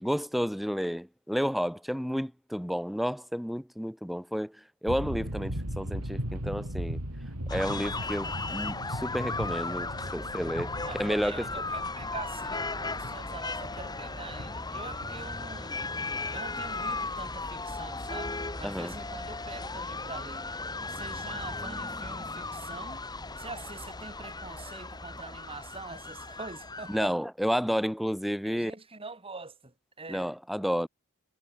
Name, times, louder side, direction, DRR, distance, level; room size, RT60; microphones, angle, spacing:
voice 1, 0.0-4.5 4.8-7.0 7.5-11.4 18.6-18.9 26.9-28.7 30.1-30.9, equal, ahead, 0.7 m, -31 dB
sound 1, 4.9-16.4, equal, 85° right, 6.5 m, -38 dB
sound 2, 7.5-27.1, left 3 dB, 20° left, 2.1 m, -36 dB
voice 2, 10.8-15.8 16.3-20.5 20.9-23.1 23.4-27.1 28.3-30.3, right 3 dB, 25° right, 4.1 m, -44 dB
head